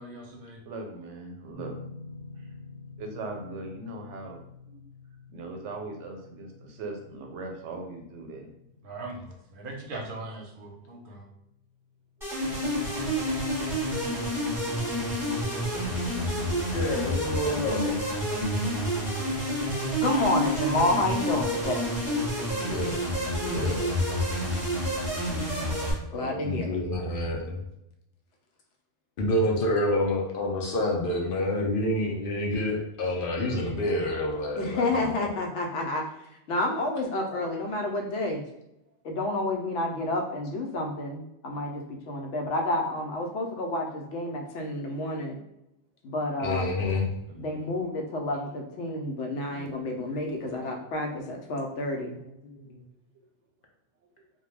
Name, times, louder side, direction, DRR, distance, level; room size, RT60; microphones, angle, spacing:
voice 1, 0.0-0.6 8.8-11.3, right 2 dB, 55° right, 0 dB, 0.7 m, -40 dB
voice 2, 0.7-1.8 2.3-2.5 3.0-4.8 5.3-8.5 47.3-47.8 53.1-53.2, right 2 dB, 85° right, 3 dB, 0.9 m, -40 dB
sound 1, 1.5-14.4, left 3 dB, 30° left, 0.7 m, -50 dB
sound 2, 12.2-25.9, equal, ahead, 0.9 m, -28 dB
voice 3, 16.7-18.0 22.4-23.9 26.1-27.6 29.2-35.3 46.4-47.1 48.9-49.1 49.5-50.7 51.1-51.2 51.5-51.6 52.1-52.8, left 1 dB, 60° left, 0 dB, 0.6 m, -29 dB
voice 4, 20.0-21.9 26.1-26.7 34.6-36.0 36.5-38.4 39.0-45.4 46.0-46.7 47.4-52.2, left 2 dB, 80° left, 2 dB, 0.9 m, -29 dB
2.2 x 2.1 x 3.1 m, 0.85 s
omnidirectional pair, 1.2 m